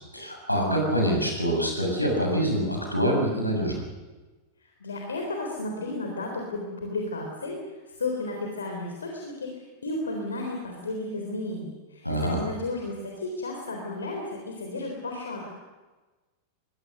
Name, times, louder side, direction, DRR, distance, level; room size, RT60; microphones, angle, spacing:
voice 1, 0.1-3.7 12.0-12.4, equal, 85° left, 1 dB, 7.0 m, -25 dB
voice 2, 4.6-15.5, left 2 dB, 70° left, 1 dB, 3.8 m, -33 dB
23.5 x 21.5 x 6.7 m, 1.2 s
figure-of-eight pair, 90°, 0 cm